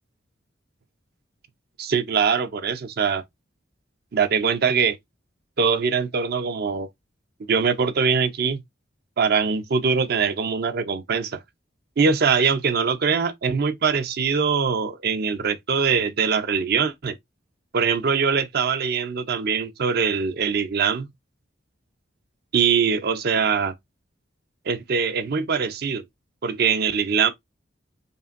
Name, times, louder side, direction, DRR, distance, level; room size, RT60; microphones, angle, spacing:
voice 1, 1.8-3.2 4.1-5.0 5.6-6.9 7.5-8.6 9.2-11.4 12.0-17.2 17.7-21.1 22.5-23.7 24.7-26.0 26.4-27.3, right 5 dB, 50° right, 0.5 m, -22 dB
5.2 x 2.5 x 2.4 m
head